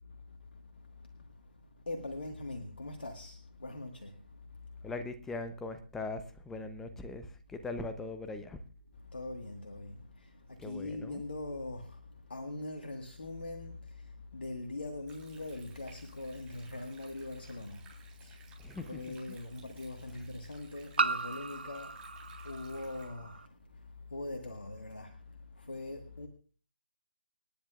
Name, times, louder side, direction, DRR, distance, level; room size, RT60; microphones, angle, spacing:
voice 1, 1.9-4.1 9.1-10.0 10.6-11.9 12.3-13.8 14.3-17.8 18.2-18.4 18.9-21.9 22.4-23.4 24.1-25.1 25.6-26.3, left 2 dB, 70° left, 1.6 m, -41 dB
voice 2, 4.8-8.6 10.6-11.2 18.6-19.2, left 3 dB, 5° left, 0.7 m, -40 dB
Stream, 15.1-23.1, right 5 dB, 15° right, 3.6 m, -60 dB
sound 1, 17.0-17.1 18.8-18.9 21.0-23.5, right 4 dB, 70° right, 0.7 m, -35 dB
27.5 x 10.0 x 2.4 m
figure-of-eight pair, 145°, 6 cm